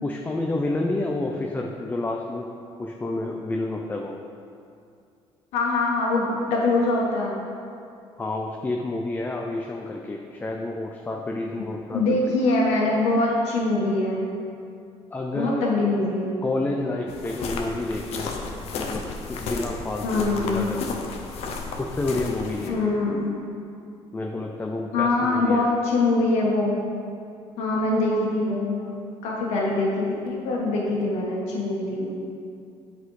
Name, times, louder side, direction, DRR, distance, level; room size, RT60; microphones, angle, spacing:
voice 1, 0.0-2.5 2.8-4.2 8.2-12.3 15.1-15.7 16.4-18.4 18.8-20.8 21.8-23.0 24.1-25.7, left 2 dB, 15° left, 1 dB, 0.5 m, -29 dB
voice 2, 5.5-7.4 11.9-14.2 15.3-16.4 20.0-20.7 22.7-23.4 24.9-26.8 27.6-28.8 29.2-32.1, left 2 dB, 90° left, -3 dB, 1.4 m, -23 dB
sound 1, 17.1-22.7, left 3 dB, 70° left, 0.8 m, -33 dB
8.1 x 4.2 x 4.8 m, 2.5 s
cardioid pair, 110°, 11 cm